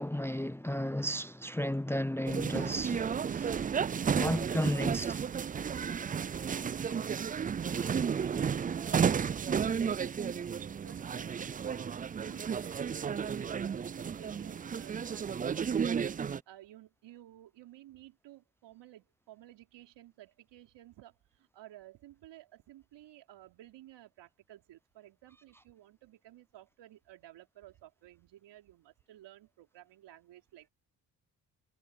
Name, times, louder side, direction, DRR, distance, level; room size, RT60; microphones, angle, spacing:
voice 1, 0.0-3.5 4.1-5.2, left 1 dB, 5° left, 0.7 m, -33 dB
sound 1, 2.3-16.4, right 7 dB, 20° right, 0.4 m, -32 dB
voice 2, 6.5-10.5 10.8-30.7, right 14 dB, 70° right, 4.1 m, -55 dB
hypercardioid pair, 55°, 44 cm